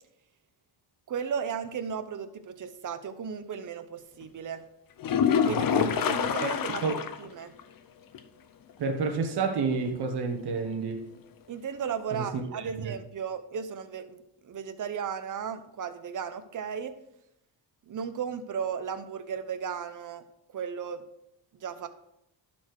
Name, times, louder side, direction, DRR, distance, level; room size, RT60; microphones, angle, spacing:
voice 1, 1.1-4.6 5.4-7.5 11.5-17.0 17.9-20.2 20.5-21.0 21.5-21.9, right 7 dB, 45° right, 0.9 m, -35 dB
sound 1, 5.0-7.3 7.6-7.7 8.1-8.2 12.0-12.1, left 7 dB, 50° left, 0.8 m, -26 dB
voice 2, 8.8-11.1 12.1-13.0, right 4 dB, 60° right, 1.2 m, -30 dB
12.0 x 4.4 x 4.7 m
cardioid pair, 95°, 44 cm